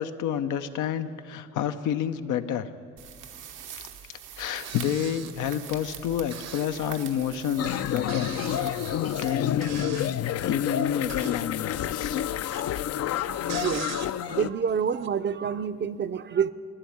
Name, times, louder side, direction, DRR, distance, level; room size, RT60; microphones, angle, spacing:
voice 1, 0.0-2.7 4.1-8.8 9.2-10.0 10.4-12.2 12.6-12.9, left 9 dB, 85° left, 9 dB, 0.7 m, -29 dB
sound 1, 3.0-10.1, right 8 dB, 90° right, 1.1 m, -44 dB
sound 2, 4.6-5.5 6.3-6.8 7.1-7.2 7.6-10.2 10.9-11.6 11.8-14.3 14.7-15.1, right 8 dB, 60° right, 0.9 m, -41 dB
sound 3, 7.6-14.5, left 11 dB, 55° left, 0.4 m, -29 dB
voice 2, 13.2-16.5, right 7 dB, 40° right, 12 dB, 0.5 m, -28 dB
13.0 x 10.0 x 8.6 m, 2.3 s
cardioid pair, 90°, 30 cm